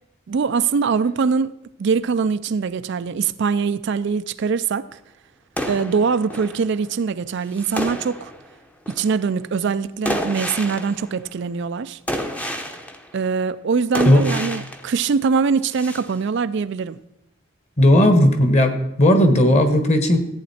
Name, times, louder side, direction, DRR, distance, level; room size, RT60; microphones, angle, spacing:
voice 1, 0.3-4.9 5.7-8.3 9.0-12.0 13.1-17.0, right 5 dB, 55° right, 13 dB, 0.4 m, -22 dB
sound 1, 5.6-6.9 7.5-8.5 8.9-9.2 10.0-11.3 12.1-13.2 13.9-15.0 15.7-16.1, equal, 5° left, 0.7 m, -30 dB
voice 2, 17.8-20.2, left 1 dB, 30° left, 7 dB, 1.3 m, -15 dB
14.5 x 8.6 x 4.2 m, 0.83 s
head